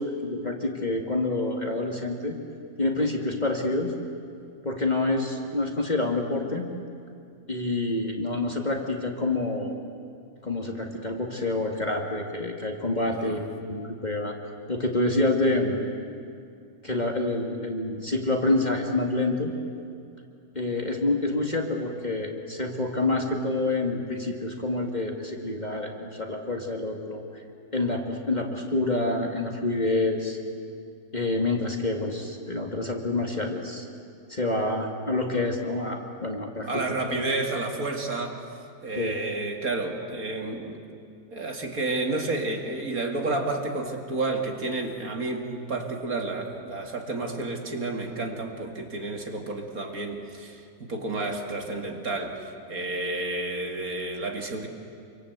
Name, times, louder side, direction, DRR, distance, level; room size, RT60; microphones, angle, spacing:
voice 1, 0.0-2.3 2.8-3.9 4.6-6.7 7.5-9.7 10.4-14.4 14.7-15.8 16.8-19.5 20.6-27.2 27.7-30.4 31.1-33.9 34.3-37.3 38.9-39.2, left 2 dB, 25° left, 1 dB, 2.2 m, -27 dB
voice 2, 36.6-38.4 38.8-40.8 41.3-54.7, right 2 dB, 55° right, 3 dB, 2.7 m, -30 dB
27.0 x 25.0 x 8.2 m, 2.3 s
omnidirectional pair, 1.8 m